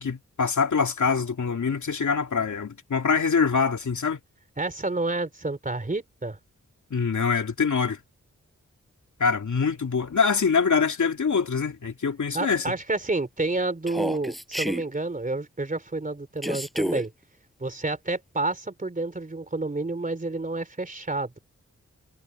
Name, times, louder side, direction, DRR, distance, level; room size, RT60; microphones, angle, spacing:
voice 1, 0.0-4.2 6.9-8.0 9.2-12.6, left 5 dB, 70° left, 2.8 m, -24 dB
voice 2, 4.6-6.4 12.3-17.1 17.6-21.4, right 2 dB, 25° right, 3.7 m, -29 dB
Human voice, 13.9-14.8 16.4-17.0, equal, ahead, 6.2 m, -29 dB
wide cardioid pair, 100°, 30 cm